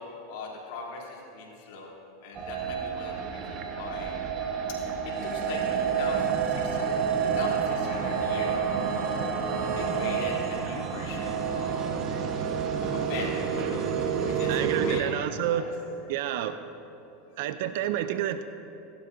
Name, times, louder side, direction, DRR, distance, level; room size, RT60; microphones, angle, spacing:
voice 1, 0.0-1.9 2.2-4.6 5.0-12.2 12.8-15.2 15.5-15.7, left 3 dB, 70° left, -3 dB, 3.1 m, -40 dB
sound 1, 2.4-15.0, right 6 dB, 45° right, 1.2 m, -29 dB
voice 2, 14.5-15.8 16.1-16.6 17.4-18.4, right 11 dB, 70° right, 11 dB, 0.5 m, -29 dB
19.5 x 12.0 x 2.7 m, 2.9 s
hypercardioid pair, 100°, 0 cm